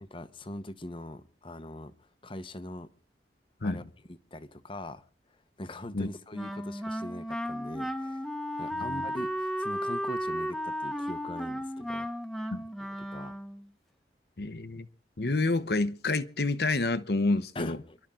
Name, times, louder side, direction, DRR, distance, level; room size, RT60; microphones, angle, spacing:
voice 1, 0.0-2.9 3.6-5.0 5.6-8.2 8.6-12.1 12.8-13.3 17.5-18.0, left 1 dB, 30° left, 1.0 m, -42 dB
Wind instrument woodwind instrument, 6.3-13.7, equal, ahead, 1.1 m, -34 dB
voice 2, 14.4-14.9 15.2-17.8, left 2 dB, 65° left, 1.0 m, -28 dB
28.5 x 12.0 x 3.8 m
head